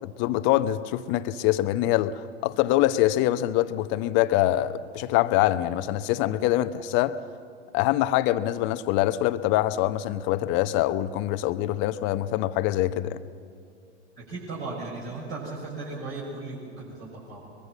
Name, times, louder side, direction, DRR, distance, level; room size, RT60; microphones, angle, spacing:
voice 1, 0.0-7.2 7.7-13.2, left 14 dB, 35° left, 0.8 m, -24 dB
voice 2, 14.2-17.4, right 3 dB, 40° right, 6.4 m, -36 dB
22.5 x 22.0 x 7.7 m
figure-of-eight pair, 95°, 34 cm